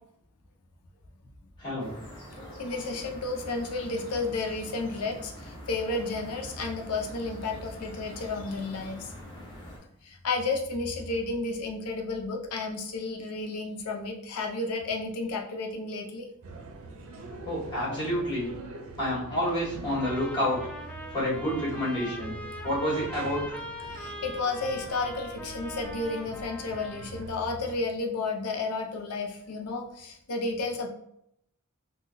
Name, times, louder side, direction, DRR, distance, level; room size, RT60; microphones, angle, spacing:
voice 1, 1.6-1.9 17.4-18.5 19.0-20.6 21.1-22.3 22.6-23.6, equal, 20° left, -8 dB, 1.5 m, -29 dB
sound 1, 1.8-9.8, equal, 55° left, 1.1 m, -44 dB
voice 2, 2.6-9.1 10.0-16.3 23.9-30.9, left 3 dB, 90° left, 2 dB, 0.5 m, -32 dB
sound 2, 16.4-27.8, right 2 dB, 65° right, 0.5 m, -44 dB
Trumpet, 19.9-27.3, equal, 5° left, 0.3 m, -41 dB
3.6 x 2.2 x 2.6 m, 0.74 s
head